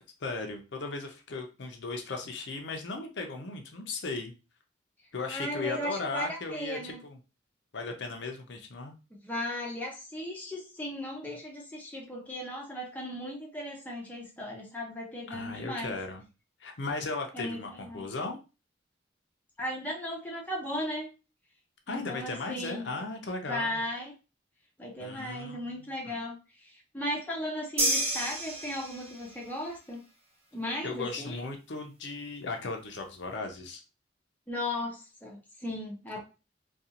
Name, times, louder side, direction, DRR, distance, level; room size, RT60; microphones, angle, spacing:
voice 1, 0.2-4.3 5.1-7.2 7.7-8.9 15.3-16.2 16.6-18.4 21.9-23.8 25.0-26.2 30.8-33.8, left 3 dB, 65° left, 3 dB, 0.5 m, -37 dB
voice 2, 5.3-7.0 9.2-16.0 17.3-18.0 19.6-21.1 21.9-22.9 23.5-24.1 24.8-30.0 30.5-31.3 34.5-36.2, left 1 dB, 10° left, -2 dB, 0.5 m, -36 dB
sound 1, 27.8-29.3, right 1 dB, 30° right, 0.7 m, -29 dB
2.5 x 2.3 x 2.8 m, 0.31 s
head